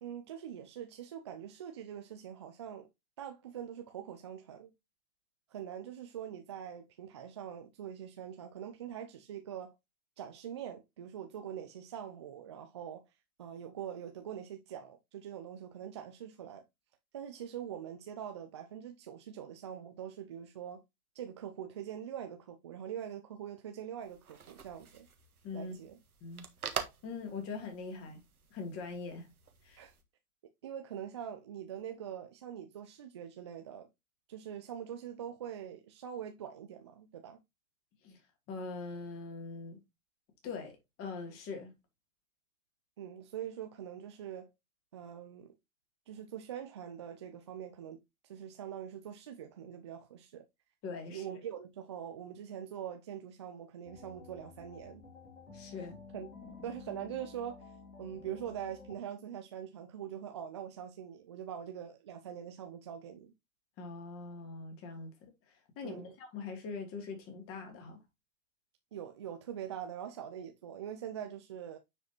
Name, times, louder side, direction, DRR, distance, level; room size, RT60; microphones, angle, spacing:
voice 1, 0.0-2.9 3.2-4.7 5.5-9.8 10.2-13.0 13.4-16.6 17.1-20.8 21.1-25.1 25.5-25.9 29.8-30.0 30.6-33.9 34.3-37.4 43.0-44.5 44.9-45.5 46.1-50.4 51.1-55.1 55.7-55.8 56.1-56.3 56.6-57.7 58.0-63.3 65.8-66.1 68.9-71.8, right 9 dB, 20° right, 0.3 m, -43 dB
sound 1, 24.0-30.0, right 6 dB, 80° right, 1.4 m, -46 dB
voice 2, 25.4-25.8 26.2-26.4 27.0-28.2 28.5-29.3 29.6-29.8 38.0-38.2 38.5-39.8 40.4-41.7 50.8-51.3 55.5-56.0 63.8-68.0, left 4 dB, 30° left, 2.9 m, -42 dB
sound 2, 53.8-59.0, left 4 dB, 80° left, 2.9 m, -52 dB
9.4 x 5.0 x 2.9 m
figure-of-eight pair, 105°, 44 cm